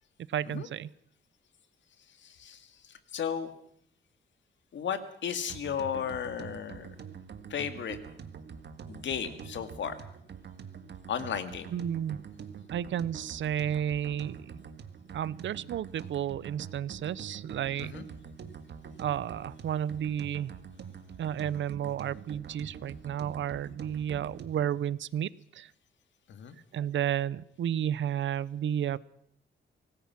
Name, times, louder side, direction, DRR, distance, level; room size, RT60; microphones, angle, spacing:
voice 1, 0.3-0.9 11.7-12.3 12.7-14.6 15.1-17.9 19.0-20.5 21.2-25.7 26.7-29.0, right 10 dB, 75° right, 20 dB, 0.7 m, -32 dB
voice 2, 2.2-3.5 4.7-6.9 7.5-8.0 8.9-10.0 11.1-11.7 17.8-18.0 26.3-26.6, left 8 dB, 75° left, 10 dB, 2.0 m, -35 dB
sound 1, 5.5-24.7, right 7 dB, 60° right, 1.7 m, -45 dB
25.0 x 19.0 x 5.9 m, 0.67 s
wide cardioid pair, 175°, 20 cm